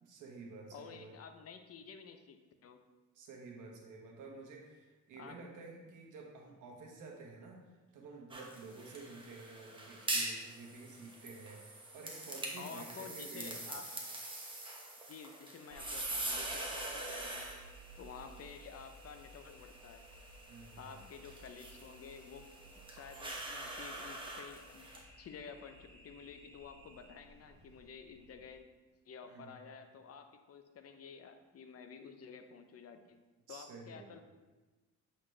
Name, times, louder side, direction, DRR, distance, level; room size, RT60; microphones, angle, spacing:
voice 1, 0.0-1.1 3.1-11.6 11.9-13.8 20.5-21.0 29.2-29.6 33.5-34.1, right 3 dB, 80° right, 0 dB, 1.3 m, -51 dB
voice 2, 0.7-2.8 5.2-5.5 12.6-13.9 15.1-17.5 18.0-20.0 20.8-22.5 22.9-24.9 25.2-28.6 29.1-33.2 33.5-34.2, left 6 dB, 50° left, 7 dB, 0.6 m, -51 dB
sound 1, 8.3-25.0, right 1 dB, 15° right, 1.2 m, -44 dB
Alien Air conditioner, 15.7-28.6, right 2 dB, 45° right, 1.2 m, -58 dB
7.7 x 4.1 x 3.2 m, 1.2 s
cardioid pair, 90°, 30 cm